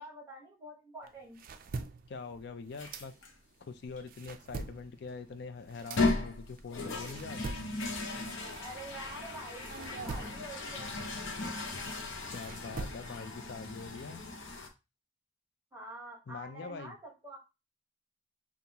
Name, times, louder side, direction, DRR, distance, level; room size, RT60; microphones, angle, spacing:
voice 1, 0.0-1.4 8.6-11.0 15.7-17.4, right 1 dB, 15° right, 1.3 m, -47 dB
sound 1, 1.0-3.6 3.9-9.2 9.6-13.4, right 3 dB, 45° right, 0.4 m, -45 dB
voice 2, 2.1-3.1 3.6-7.4 12.3-14.2 16.3-17.0, left 4 dB, 55° left, 0.4 m, -44 dB
sound 2, 2.8-3.3 4.0-4.1 5.7-14.7, left 3 dB, 70° left, 0.8 m, -36 dB
5.3 x 2.4 x 2.9 m
head